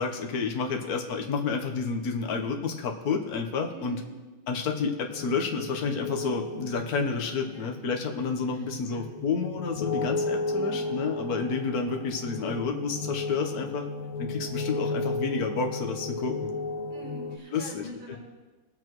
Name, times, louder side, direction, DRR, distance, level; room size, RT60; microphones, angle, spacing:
voice 1, 0.0-4.0 4.5-13.9 14.2-16.5 17.5-17.9, left 5 dB, 55° left, 3 dB, 1.4 m, -30 dB
voice 2, 3.7-4.1 7.5-7.7 8.5-9.0 10.4-11.0 14.7-14.9 16.9-18.2, right 1 dB, 90° right, -7 dB, 4.3 m, -44 dB
sound 1, 5.1-17.4, left 3 dB, 90° left, 1.5 m, -34 dB
20.0 x 7.8 x 3.1 m, 1.3 s
omnidirectional pair, 2.2 m